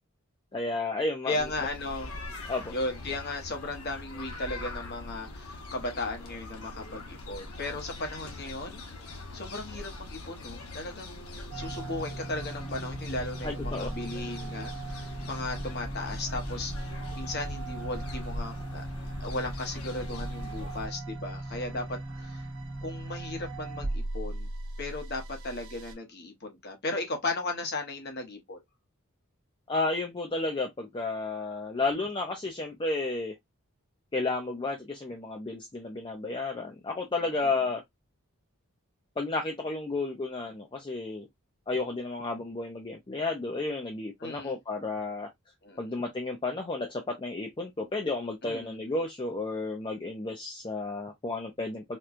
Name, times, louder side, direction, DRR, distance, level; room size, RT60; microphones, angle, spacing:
voice 1, 0.5-1.3 2.5-2.7 13.4-13.9 29.7-33.3 34.1-37.8 39.2-41.2 41.7-45.3 45.8-52.0, left 3 dB, 20° left, 0.4 m, -32 dB
voice 2, 1.2-2.1 2.7-8.8 9.3-18.9 19.2-22.4 22.8-24.5 24.8-28.6 37.4-37.5 44.2-44.5 45.6-45.8 48.4-48.8, left 2 dB, 45° left, 1.0 m, -36 dB
sound 1, 1.4-20.9, left 1 dB, 80° left, 0.9 m, -41 dB
sound 2, 11.5-25.9, right 2 dB, 70° right, 0.9 m, -38 dB
4.3 x 2.3 x 2.5 m
head